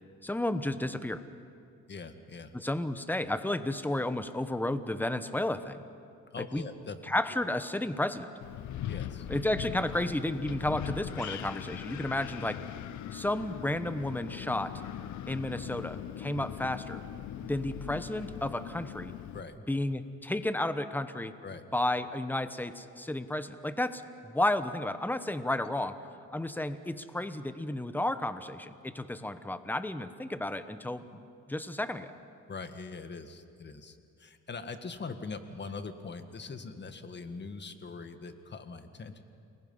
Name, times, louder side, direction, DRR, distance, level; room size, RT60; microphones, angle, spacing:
voice 1, 0.2-1.2 2.5-5.8 6.5-6.7 7.1-8.3 9.3-12.6 13.1-14.7 15.3-17.0 17.4-19.1 19.7-21.3 21.7-26.0 26.3-31.2 31.5-32.1, left 1 dB, 5° left, 11 dB, 1.1 m, -32 dB
voice 2, 1.9-2.5 6.3-7.0 8.9-9.3 11.2-11.3 19.3-19.6 21.4-21.6 32.5-39.2, left 4 dB, 35° left, 8 dB, 1.7 m, -42 dB
Wind, 8.4-19.4, left 11 dB, 75° left, 0.8 m, -40 dB
29.5 x 20.5 x 5.6 m, 2.5 s
cardioid pair, 90°, 30 cm